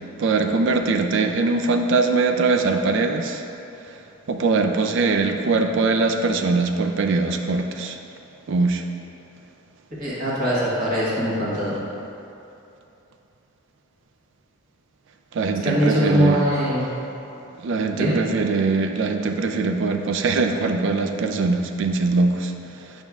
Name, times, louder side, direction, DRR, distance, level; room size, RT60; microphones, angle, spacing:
voice 1, 0.2-3.4 4.3-8.0 8.5-8.8 15.3-16.4 17.6-22.9, right 3 dB, 60° right, 5 dB, 0.3 m, -22 dB
voice 2, 10.0-11.8 15.6-16.8 17.9-18.2, equal, 40° right, -8 dB, 1.4 m, -22 dB
8.8 x 5.2 x 2.4 m, 2.8 s
head